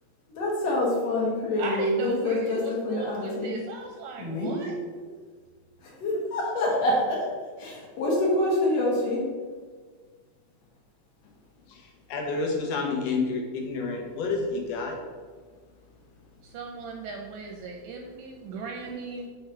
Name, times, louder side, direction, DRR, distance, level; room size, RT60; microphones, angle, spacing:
voice 1, 0.4-3.6 4.2-5.0 6.0-7.3 7.6-9.3, left 1 dB, 60° left, -3 dB, 2.2 m, -26 dB
voice 2, 1.6-4.7 16.4-19.3, right 4 dB, 80° right, 2 dB, 1.7 m, -37 dB
voice 3, 11.7-15.0, left 3 dB, 85° left, 0 dB, 2.6 m, -29 dB
6.4 x 3.4 x 5.5 m, 1.5 s
omnidirectional pair, 3.7 m